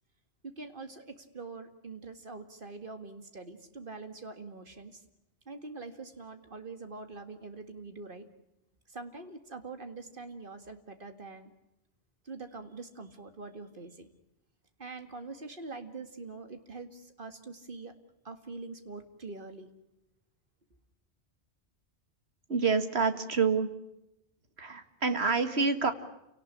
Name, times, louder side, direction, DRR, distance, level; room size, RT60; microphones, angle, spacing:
voice 1, 0.4-5.0 5.5-8.3 8.9-11.5 12.2-14.1 14.8-17.9 18.2-19.7, right 3 dB, 50° right, 8 dB, 2.2 m, -44 dB
voice 2, 22.5-23.7 24.6-25.9, right 5 dB, 70° right, 9 dB, 2.1 m, -27 dB
28.5 x 18.0 x 10.0 m, 0.87 s
omnidirectional pair, 1.1 m